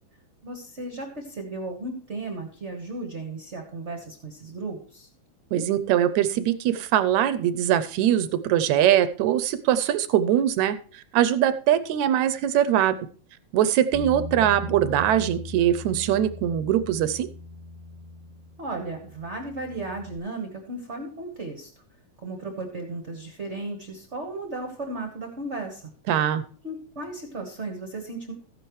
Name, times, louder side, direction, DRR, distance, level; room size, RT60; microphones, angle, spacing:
voice 1, 0.4-5.1 18.6-21.7 22.2-25.8 26.6-28.3, right 2 dB, 35° right, 4 dB, 1.1 m, -35 dB
voice 2, 5.5-13.0 13.5-17.3 26.1-26.4, right 11 dB, 80° right, 13 dB, 1.9 m, -22 dB
Bass guitar, 13.9-20.2, left 1 dB, 15° right, 1.5 m, -39 dB
14.0 x 10.0 x 3.2 m, 0.43 s
omnidirectional pair, 3.4 m